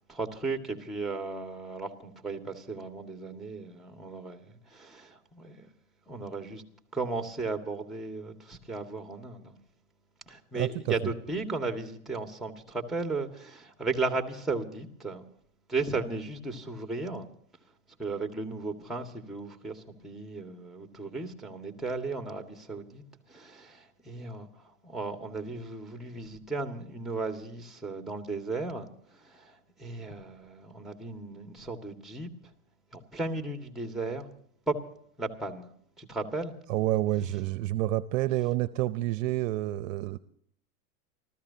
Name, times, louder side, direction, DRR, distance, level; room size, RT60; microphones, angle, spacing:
voice 1, 0.1-5.7 6.1-6.6 6.9-9.6 10.3-15.2 15.7-17.3 18.0-24.5 24.8-32.3 32.9-34.3 34.7-34.8 35.2-35.7 36.0-36.5, right 3 dB, ahead, 1.9 m, -35 dB
voice 2, 10.5-10.9 36.7-40.2, right 15 dB, 55° right, 0.7 m, -28 dB
29.0 x 14.0 x 2.8 m
hypercardioid pair, 120°, 47 cm